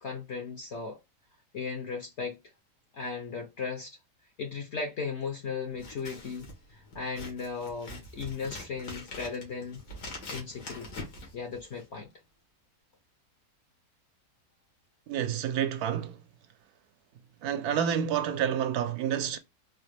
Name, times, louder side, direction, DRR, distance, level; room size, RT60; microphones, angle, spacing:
voice 1, 0.0-1.0 1.5-2.4 2.9-4.0 4.4-9.8 10.3-11.0 11.3-12.1, left 5 dB, 60° left, 0.8 m, -36 dB
Scissors, 5.7-12.0, left 2 dB, 85° left, 1.9 m, -44 dB
voice 2, 15.1-16.2 17.4-19.4, right 9 dB, 75° right, 1.1 m, -29 dB
4.1 x 2.1 x 3.1 m
omnidirectional pair, 1.7 m